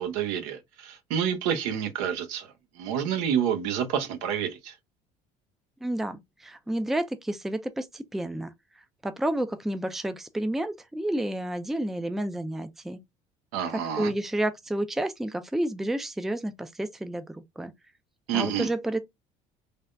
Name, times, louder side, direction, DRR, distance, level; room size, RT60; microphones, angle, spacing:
voice 1, 0.0-4.7 13.5-14.1 18.3-18.7, right 8 dB, 90° right, 0.7 m, -29 dB
voice 2, 5.8-8.5 9.0-13.0 13.7-17.7 18.3-19.0, right 1 dB, ahead, 0.3 m, -30 dB
3.3 x 2.1 x 2.4 m
cardioid pair, 115°, 15 cm